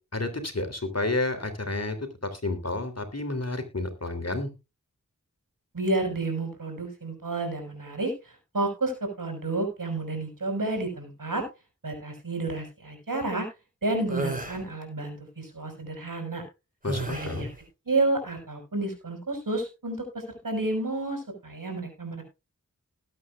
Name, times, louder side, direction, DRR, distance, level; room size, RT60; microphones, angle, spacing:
voice 1, 0.1-2.0 2.2-4.5 16.8-17.5, left 2 dB, 50° left, 8 dB, 3.1 m, -30 dB
voice 2, 5.7-11.4 11.8-13.5 13.8-16.4 17.1-17.5 17.9-20.0 20.4-22.2, right 2 dB, 85° right, 4 dB, 5.7 m, -30 dB
sound 1, 14.1-14.6 16.9-17.5, right 2 dB, 25° right, 3.5 m, -32 dB
20.0 x 8.6 x 2.4 m, 0.27 s
wide cardioid pair, 50°, 32 cm